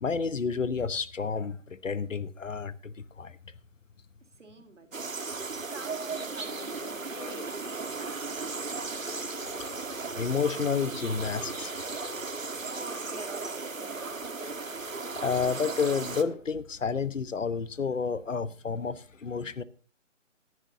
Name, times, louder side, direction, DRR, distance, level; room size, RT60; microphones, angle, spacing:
voice 1, 0.0-3.4 10.1-11.7 14.7-14.8 15.1-19.6, left 5 dB, 70° left, 1.2 m, -30 dB
voice 2, 4.2-5.1 5.5-9.0 12.6-14.6, right 3 dB, 65° right, 3.4 m, -48 dB
sound 1, 4.9-16.2, right 4 dB, 80° right, 1.5 m, -36 dB
sound 2, 6.5-16.4, left 4 dB, 30° left, 2.7 m, -48 dB
18.0 x 11.0 x 2.7 m
figure-of-eight pair, 150°, 39 cm